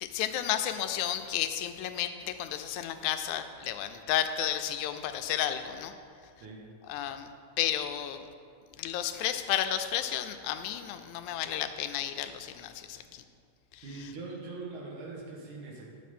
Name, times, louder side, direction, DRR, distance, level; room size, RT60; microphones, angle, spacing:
voice 1, 0.0-5.9 6.9-7.3 7.6-8.2 8.8-13.2 13.7-13.8, left 11 dB, 85° left, 9 dB, 2.0 m, -32 dB
voice 2, 6.4-6.7 13.8-15.8, right 3 dB, 90° right, -1 dB, 2.7 m, -42 dB
10.0 x 6.8 x 4.2 m, 2.3 s
omnidirectional pair, 3.4 m